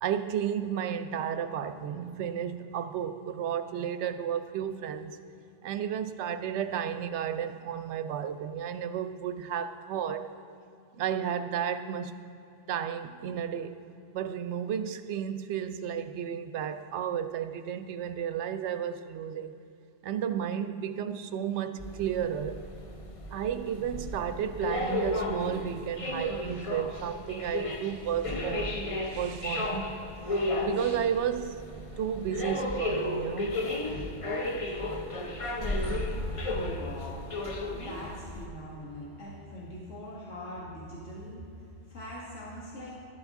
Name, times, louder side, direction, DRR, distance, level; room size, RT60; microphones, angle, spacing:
voice 1, 0.0-5.2 5.6-10.3 10.9-12.1 12.7-13.8 14.1-19.5 20.0-22.6 23.3-28.9 29.1-30.0 30.6-31.6 32.0-33.6, right 9 dB, 75° right, 0.9 m, -32 dB
sound 1, 21.8-38.5, left 2 dB, 35° left, 0.7 m, -34 dB
voice 2, 36.3-43.0, equal, 90° left, 1.9 m, -42 dB
12.0 x 11.0 x 3.6 m
omnidirectional pair, 1.2 m